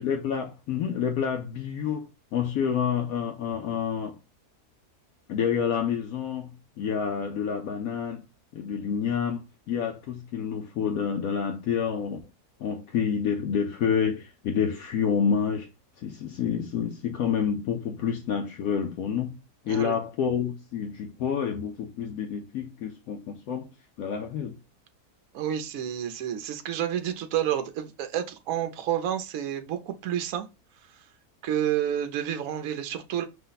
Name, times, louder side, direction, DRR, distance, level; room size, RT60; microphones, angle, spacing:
voice 1, 0.0-4.2 5.3-6.5 6.8-8.2 8.5-12.2 12.6-15.7 16.0-19.4 19.6-23.7 24.0-24.6, left 7 dB, 70° left, 1.0 m, -28 dB
voice 2, 19.7-20.0 25.3-30.5 31.4-33.2, right 10 dB, 65° right, 1.0 m, -29 dB
5.5 x 2.1 x 3.9 m
omnidirectional pair, 1.7 m